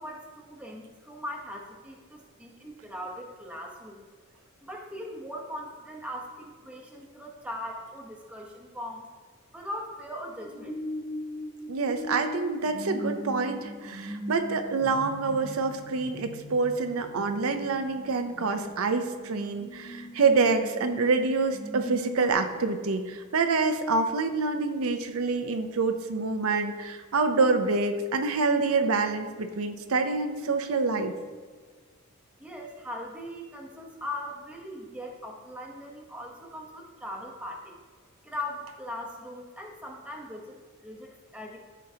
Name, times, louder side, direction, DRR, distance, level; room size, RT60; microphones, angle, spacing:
voice 1, 0.0-4.1 4.6-9.1 9.5-10.8 32.4-37.8 38.2-41.6, left 1 dB, 5° right, -1 dB, 0.9 m, -40 dB
sound 1, 10.1-22.3, equal, 30° left, 1.4 m, -40 dB
voice 2, 11.7-31.1, right 4 dB, 70° right, 6 dB, 0.6 m, -26 dB
13.0 x 4.6 x 2.8 m, 1.5 s
head